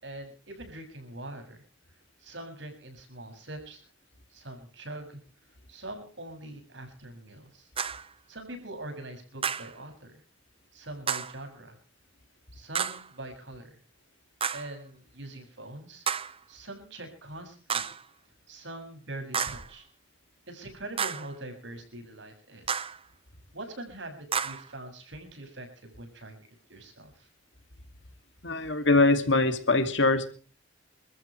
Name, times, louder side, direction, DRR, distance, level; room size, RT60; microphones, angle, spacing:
voice 1, 0.0-1.6 2.2-3.8 4.3-5.2 5.7-7.7 8.3-10.1 10.7-11.8 12.5-13.8 14.5-16.1 16.5-17.9 18.5-19.8 20.5-22.9 23.5-27.3, right 1 dB, 65° right, 6 dB, 7.2 m, -43 dB
sound 1, 7.8-8.1 9.4-9.8 11.1-11.4 12.7-13.1 14.4-14.7 16.1-16.4 17.7-18.1 19.3-19.7 21.0-21.3 22.7-23.0 24.3-24.7, right 7 dB, 30° right, 0.8 m, -31 dB
voice 2, 28.4-30.3, left 2 dB, 65° left, 8 dB, 2.7 m, -23 dB
29.0 x 14.0 x 3.3 m, 0.41 s
head